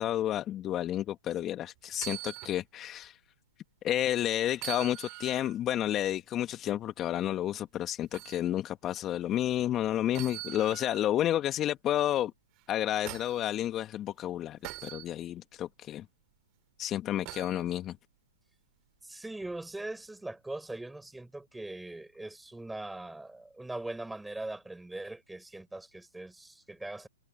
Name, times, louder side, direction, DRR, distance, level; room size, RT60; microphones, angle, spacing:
voice 1, 0.0-3.2 3.8-12.3 12.7-16.0 16.8-18.0, left 12 dB, 25° left, 1.3 m, -31 dB
sound 1, 1.9-2.6 3.0-3.1 4.5-5.6 8.1-8.4 10.1-11.1 12.6-13.5 14.6-15.1 17.2-17.6 19.4-19.5, right 23 dB, 35° right, 3.8 m, -42 dB
voice 2, 19.0-27.1, right 2 dB, 5° right, 6.0 m, -41 dB
hypercardioid pair, 125°, 0 cm